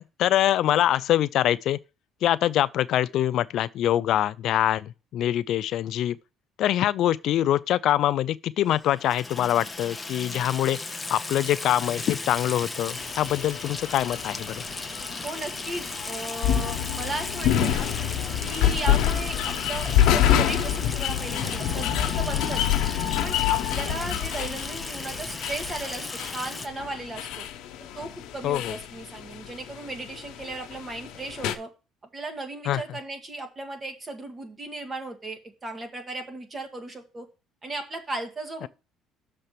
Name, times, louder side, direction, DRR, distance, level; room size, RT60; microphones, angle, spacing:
voice 1, 0.0-1.8 2.2-6.2 6.6-14.5 28.4-28.8 32.7-32.8 38.6-38.7, left 12 dB, 60° left, 0.3 m, -24 dB
Water tap faucet / Sink (filling or washing), 8.8-26.7, left 2 dB, 10° left, 0.8 m, -36 dB
sound 1, 13.0-31.5, left 10 dB, 75° left, 1.0 m, -27 dB
voice 2, 15.2-17.9 18.4-22.6 23.2-26.1 26.3-27.5 27.8-31.7 32.1-37.3 37.6-38.7, right 2 dB, 25° right, 1.8 m, -36 dB
6.7 x 4.4 x 6.7 m
cardioid pair, 120°, 0 cm